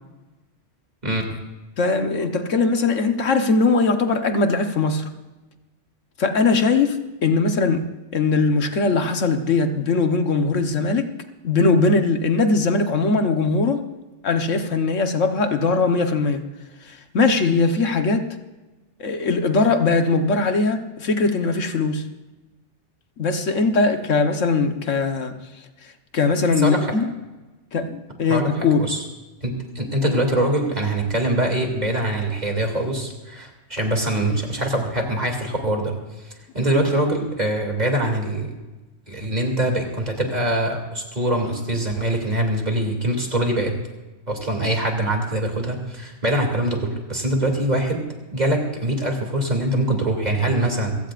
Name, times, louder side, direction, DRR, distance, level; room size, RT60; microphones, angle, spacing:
voice 1, 1.8-5.0 6.2-7.9 8.1-11.1 11.4-13.8 14.2-16.4 17.1-18.3 19.0-22.0 23.2-25.3 26.1-27.1 27.7-28.8, left 3 dB, 85° left, 6 dB, 1.6 m, -20 dB
voice 2, 28.3-29.0 29.4-35.9 36.5-38.5 39.1-43.7 44.3-48.0 48.3-51.0, right 1 dB, 35° right, 1 dB, 2.9 m, -23 dB
28.0 x 16.0 x 2.5 m, 1.1 s
omnidirectional pair, 1.3 m